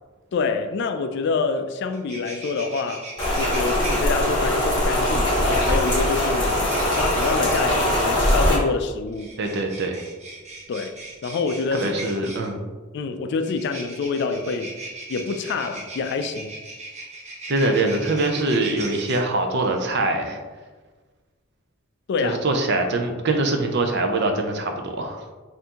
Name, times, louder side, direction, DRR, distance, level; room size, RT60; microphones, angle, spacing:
voice 1, 0.3-3.1 3.3-9.3 10.7-10.9 11.2-11.9 12.2-12.3 12.9-14.7 15.1-16.6 22.1-22.4, left 4 dB, 55° left, 8 dB, 0.3 m, -27 dB
sound 1, 1.6-1.7 1.9-4.0 5.0-7.7 9.1-12.5 13.4-19.2, right 2 dB, 35° right, 0.8 m, -38 dB
Rain, 3.2-8.6, left 1 dB, 20° left, 1.4 m, -21 dB
voice 2, 9.4-10.0 11.7-12.7 17.5-20.4 22.2-25.3, right 2 dB, 55° right, 4 dB, 0.5 m, -23 dB
5.5 x 2.6 x 2.9 m, 1.3 s
head